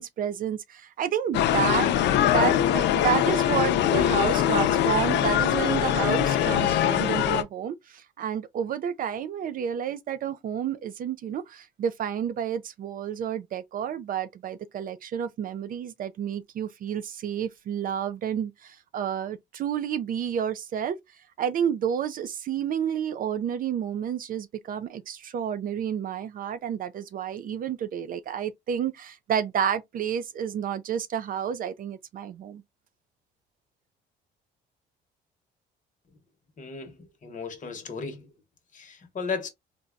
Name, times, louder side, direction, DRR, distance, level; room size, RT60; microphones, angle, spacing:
voice 1, 0.0-2.0 2.3-21.0 21.4-32.6, right 9 dB, 45° right, 0.4 m, -30 dB
sound 1, 1.3-7.4, left 11 dB, 65° left, 0.5 m, -22 dB
voice 2, 36.6-36.9 37.2-38.2 38.7-39.5, left 5 dB, 40° left, 1.0 m, -34 dB
3.8 x 2.2 x 2.4 m
cardioid pair, 105°, 20 cm